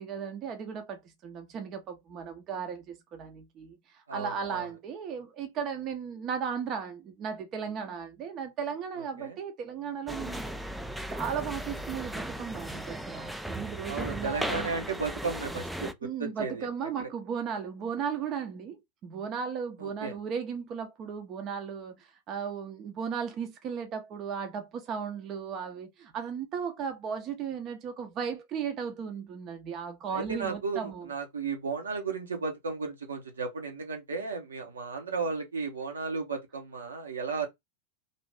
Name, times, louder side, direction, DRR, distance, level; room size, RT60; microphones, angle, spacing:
voice 1, 0.0-10.7 11.1-14.7 16.0-31.1, right 7 dB, 35° right, 0.7 m, -36 dB
voice 2, 4.1-4.7 9.2-9.4 13.9-16.7 17.0-17.1 19.8-20.1 30.1-37.5, right 4 dB, 70° right, 0.9 m, -34 dB
sound 1, 10.1-15.9, right 1 dB, 5° right, 0.3 m, -37 dB
2.6 x 2.5 x 3.3 m
figure-of-eight pair, 90°, 0 cm